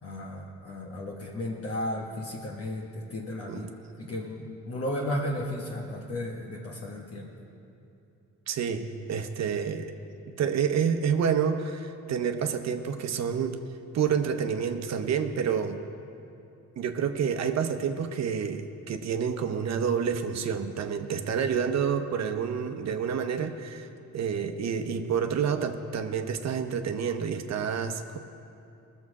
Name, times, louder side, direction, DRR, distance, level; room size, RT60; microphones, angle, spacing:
voice 1, 0.0-3.7 4.0-7.3, left 1 dB, 50° left, -2 dB, 1.3 m, -34 dB
voice 2, 8.5-9.9 10.4-13.6 13.9-15.8 16.8-23.9 24.1-28.2, right 7 dB, 60° right, 7 dB, 0.8 m, -28 dB
18.0 x 7.1 x 4.8 m, 2.8 s
cardioid pair, 90°, 30 cm